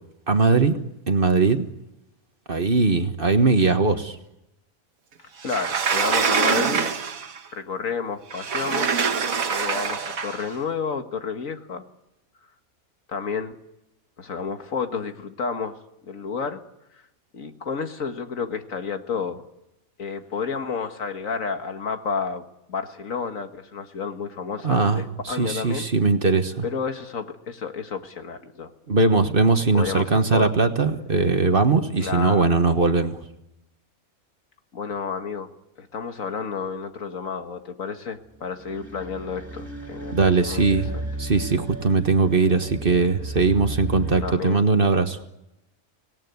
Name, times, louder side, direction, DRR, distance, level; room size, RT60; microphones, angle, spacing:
voice 1, 0.3-0.7 1.1-1.7 2.5-4.2 24.6-26.6 28.9-33.2 40.1-40.9 41.2-45.2, right 4 dB, 40° right, 8 dB, 1.4 m, -20 dB
voice 2, 5.4-7.0 7.5-8.9 9.5-11.8 13.1-13.6 14.2-15.8 16.1-16.6 17.3-19.4 20.0-25.9 26.6-28.7 29.7-30.5 32.0-32.6 34.7-35.5 35.8-41.1 44.2-44.6, left 5 dB, 70° left, 7 dB, 2.0 m, -31 dB
Sliding door, 5.4-7.4 8.3-10.5, right 6 dB, 75° right, 1.7 m, -24 dB
sound 1, 38.3-44.3, right 1 dB, 10° right, 7.3 m, -35 dB
25.5 x 19.0 x 9.5 m, 0.90 s
omnidirectional pair, 1.4 m